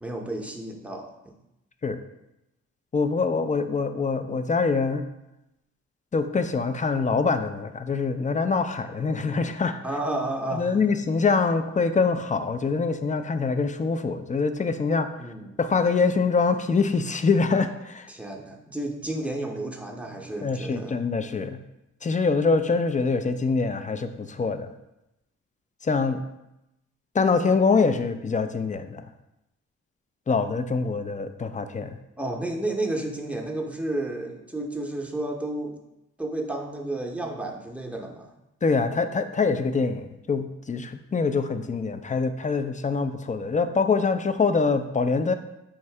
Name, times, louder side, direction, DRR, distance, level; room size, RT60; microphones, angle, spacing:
voice 1, 0.0-1.1 9.8-10.8 15.2-15.6 18.1-21.0 32.2-35.8 36.2-38.3, right 1 dB, 5° right, 1 dB, 0.7 m, -31 dB
voice 2, 2.9-5.1 6.1-9.8 10.5-15.3 15.6-18.1 20.4-21.6 22.0-24.7 25.8-26.2 27.1-29.1 30.3-32.0 38.6-45.3, left 4 dB, 25° left, 9 dB, 0.3 m, -24 dB
4.7 x 2.6 x 3.3 m, 0.90 s
supercardioid pair, 45°, 34 cm